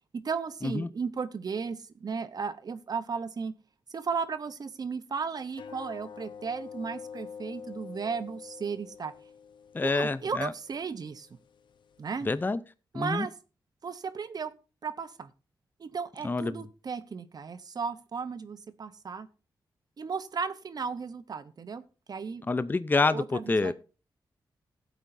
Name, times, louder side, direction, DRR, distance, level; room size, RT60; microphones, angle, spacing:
voice 1, 0.2-3.5 3.9-9.1 9.8-11.3 12.0-12.3 12.9-13.3 13.8-14.5 14.8-15.3 15.8-19.3 20.0-21.8 22.1-22.4 23.1-23.7, right 5 dB, 55° right, 0.8 m, -35 dB
sound 1, 5.5-12.4, left 6 dB, 75° left, 0.8 m, -47 dB
voice 2, 9.7-10.5 12.3-12.6 12.9-13.3 16.2-16.6 22.5-23.7, left 3 dB, 25° left, 0.6 m, -27 dB
15.5 x 8.2 x 2.6 m
cardioid pair, 85°, 8 cm